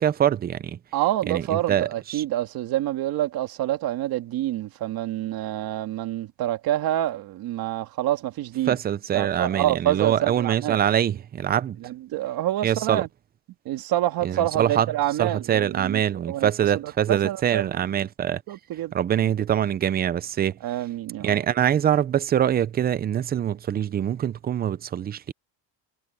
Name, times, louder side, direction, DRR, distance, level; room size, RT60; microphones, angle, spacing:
voice 1, 0.0-0.8 1.3-2.2 8.7-11.8 12.6-13.0 14.2-14.9 15.2-18.4 18.9-20.6 21.2-25.3, right 10 dB, 25° right, 0.4 m, -24 dB
voice 2, 0.9-8.8 9.1-10.8 11.8-13.1 13.7-18.1 18.5-18.9 20.6-21.4, right 13 dB, 55° right, 2.2 m, -27 dB
cardioid pair, 165°, 42 cm